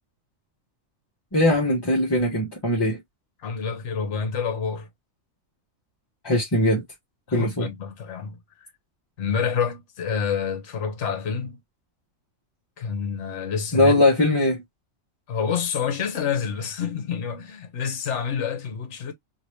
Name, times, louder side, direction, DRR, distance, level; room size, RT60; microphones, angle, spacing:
voice 1, 1.3-3.0 6.2-6.8 7.3-7.7 13.7-14.6, left 1 dB, 20° left, 1.0 m, -20 dB
voice 2, 3.4-4.9 7.3-8.4 9.2-11.6 12.8-14.0 15.3-19.1, left 6 dB, 60° left, 1.2 m, -28 dB
2.9 x 2.8 x 3.1 m
omnidirectional pair, 1.4 m